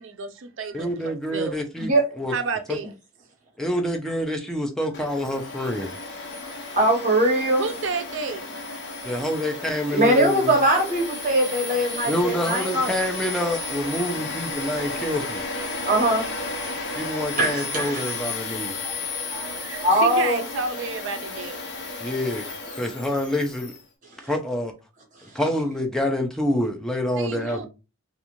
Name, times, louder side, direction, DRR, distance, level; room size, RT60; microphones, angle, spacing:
voice 1, 0.0-1.6 2.3-2.9 6.5-6.6 7.6-8.6 14.8-15.2 16.9-17.2 18.5-21.6 27.2-27.7, right 4 dB, 60° right, 0.4 m, -32 dB
voice 2, 0.7-2.3 2.7-2.8 3.6-5.9 9.0-10.6 12.0-15.4 16.9-18.7 22.0-22.4 22.7-23.7 24.2-24.7 25.3-27.7, left 1 dB, 5° left, 0.4 m, -27 dB
voice 3, 1.8-2.1 6.7-7.6 9.9-12.9 15.8-16.3 17.4-18.1 19.8-20.4, right 1 dB, 40° right, 1.0 m, -21 dB
Domestic sounds home sounds, 4.9-23.8, left 3 dB, 55° left, 0.7 m, -33 dB
2.5 x 2.4 x 2.9 m
head